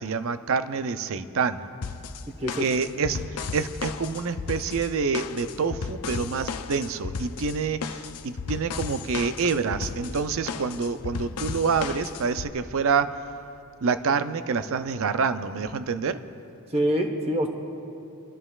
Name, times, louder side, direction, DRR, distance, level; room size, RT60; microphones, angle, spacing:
voice 1, 0.0-1.6 2.6-13.3 13.8-16.2, right 5 dB, 65° right, 11 dB, 0.5 m, -27 dB
sound 1, 1.8-12.5, left 5 dB, 80° left, 0.5 m, -35 dB
voice 2, 16.7-17.5, equal, 25° right, 3 dB, 1.2 m, -25 dB
25.5 x 13.0 x 2.4 m, 2.7 s
head